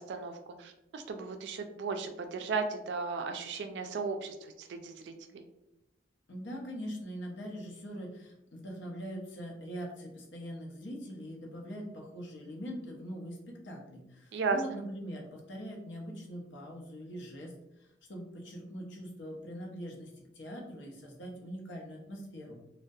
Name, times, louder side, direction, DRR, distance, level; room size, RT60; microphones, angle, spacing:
voice 1, 0.0-5.4 14.3-14.6, right 4 dB, 65° right, 6 dB, 0.3 m, -35 dB
voice 2, 6.3-22.6, equal, 80° left, -1 dB, 0.7 m, -42 dB
2.6 x 2.1 x 2.3 m, 0.87 s
head